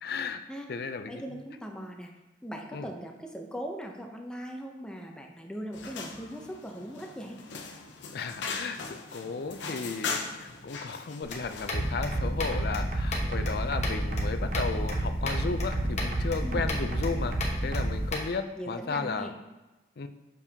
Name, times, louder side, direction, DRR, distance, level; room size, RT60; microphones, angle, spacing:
voice 1, 0.0-0.4 0.7-1.4 2.7-2.9 8.1-19.3 20.0-20.1, left 4 dB, 60° left, 9 dB, 0.4 m, -34 dB
voice 2, 1.1-2.1 2.4-7.4 16.4-16.6 18.5-19.3, equal, 5° left, 1 dB, 0.6 m, -39 dB
sound 1, 5.7-11.9, left 4 dB, 85° left, 0.7 m, -39 dB
sound 2, 11.2-18.3, left 2 dB, 40° left, 1.0 m, -39 dB
sound 3, 11.7-18.1, right 1 dB, 45° right, 0.7 m, -30 dB
7.1 x 5.3 x 2.8 m, 1.1 s
head